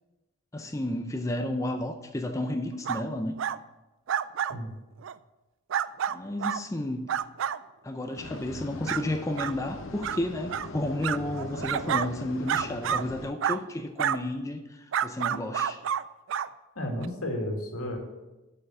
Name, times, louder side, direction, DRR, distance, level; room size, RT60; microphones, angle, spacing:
voice 1, 0.5-3.3 6.1-7.1 7.8-15.8, left 1 dB, 15° left, 5 dB, 0.5 m, -32 dB
sound 1, 2.8-3.0 3.4-3.6 4.1-4.5 5.0-5.1 5.7-6.6 7.1-7.6 8.1-8.2 8.9-9.0 9.4-9.5 10.0-10.2 10.5-10.7 11.0-12.1 12.5-13.0 13.4-13.6 14.0-14.2 14.9-16.0 16.3-16.5 17.0-17.1, right 8 dB, 60° right, 0.3 m, -29 dB
sound 2, 8.1-13.3, left 2 dB, 60° left, 0.8 m, -41 dB
voice 2, 16.8-18.0, left 1 dB, 85° left, 1 dB, 2.1 m, -32 dB
7.8 x 5.6 x 7.7 m, 1.1 s
head